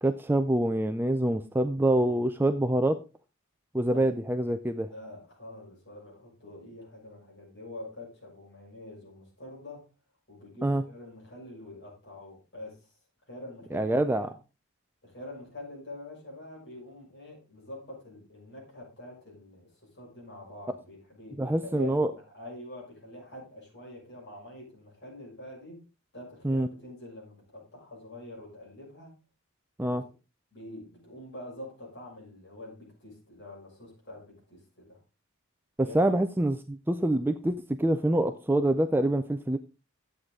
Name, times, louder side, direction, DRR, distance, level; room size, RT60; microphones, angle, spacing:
voice 1, 0.0-3.0 3.7-4.9 10.6-10.8 13.7-14.3 21.4-22.1 26.4-26.7 29.8-30.0 35.8-39.6, right 1 dB, 10° right, 8 dB, 0.4 m, -26 dB
voice 2, 3.7-4.1 4.9-9.8 10.3-12.9 13.3-14.3 15.0-25.8 26.1-29.1 29.9-30.0 30.5-35.0 35.8-36.2, left 1 dB, 50° left, -2 dB, 6.1 m, -45 dB
11.0 x 8.0 x 3.7 m, 0.30 s
head